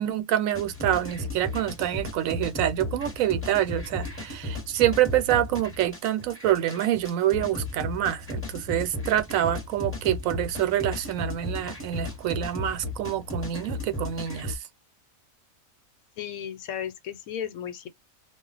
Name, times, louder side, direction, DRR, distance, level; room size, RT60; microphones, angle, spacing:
voice 1, 0.0-14.6, right 12 dB, 75° right, 1.0 m, -26 dB
sound 1, 0.5-14.6, left 2 dB, 10° left, 0.9 m, -35 dB
voice 2, 16.2-17.9, left 9 dB, 90° left, 1.1 m, -34 dB
2.4 x 2.0 x 3.8 m
omnidirectional pair, 1.4 m